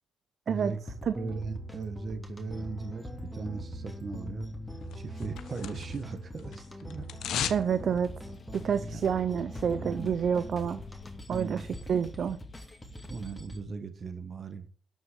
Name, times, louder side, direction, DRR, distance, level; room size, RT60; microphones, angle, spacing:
voice 1, 0.5-0.8 1.1-4.5 4.9-7.6 8.8-9.0 9.8-10.2 11.3-11.7 13.1-14.7, right 4 dB, 40° right, 8 dB, 1.6 m, -38 dB
sound 1, 0.6-13.6, equal, 5° left, 2.9 m, -42 dB
sound 2, 4.9-6.1 6.4-7.7 8.0-8.1, left 10 dB, 80° left, 1.1 m, -35 dB
voice 2, 7.5-8.1 8.5-10.8 11.3-12.4, right 7 dB, 55° right, 12 dB, 0.7 m, -28 dB
sound 3, 8.0-13.4, left 3 dB, 35° left, 2.2 m, -50 dB
12.5 x 6.3 x 8.1 m, 0.43 s
cardioid pair, 90°, 0 cm